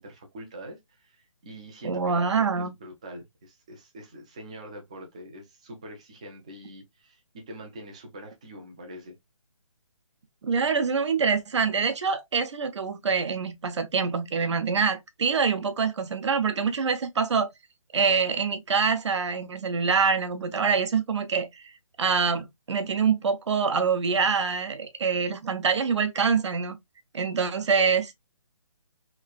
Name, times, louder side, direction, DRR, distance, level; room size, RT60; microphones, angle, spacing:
voice 1, 0.0-9.2, right 1 dB, 10° right, 0.3 m, -44 dB
voice 2, 1.8-2.7 10.4-17.5 17.9-21.7 22.0-26.8 27.1-28.1, right 5 dB, 60° right, 0.7 m, -25 dB
3.1 x 2.4 x 2.2 m
hypercardioid pair, 165°, 17 cm